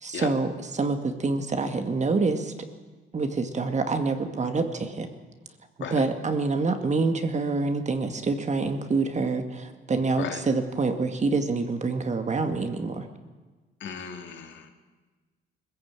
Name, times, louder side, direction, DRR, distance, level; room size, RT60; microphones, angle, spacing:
voice 1, 0.0-2.5 3.1-5.1 5.9-13.0, right 3 dB, 35° right, 6 dB, 2.2 m, -26 dB
voice 2, 13.8-14.7, left 7 dB, 70° left, 5 dB, 2.5 m, -35 dB
21.0 x 15.0 x 9.0 m, 1.3 s
cardioid pair, 90°, 20 cm